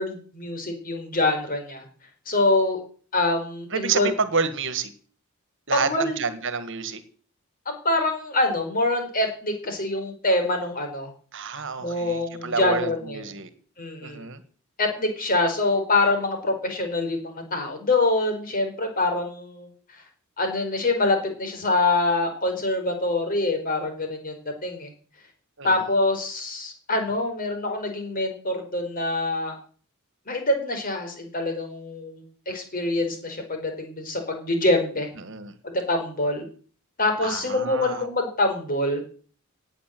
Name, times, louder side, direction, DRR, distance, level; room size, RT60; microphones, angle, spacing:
voice 1, 0.0-1.8 2.3-2.8 3.1-4.1 5.7-6.1 7.7-11.1 11.8-13.2 13.8-14.3 14.8-20.0 20.4-24.4 24.6-24.9 25.6-29.6 30.3-35.1 35.7-36.4 37.0-39.0, left 2 dB, 40° left, 5 dB, 4.6 m, -25 dB
voice 2, 3.7-4.9 5.7-7.0 11.3-13.5 14.0-14.4 25.6-25.9 35.2-35.6 37.2-38.1, right 5 dB, 55° right, 12 dB, 1.8 m, -29 dB
18.5 x 8.9 x 7.7 m, 0.44 s
head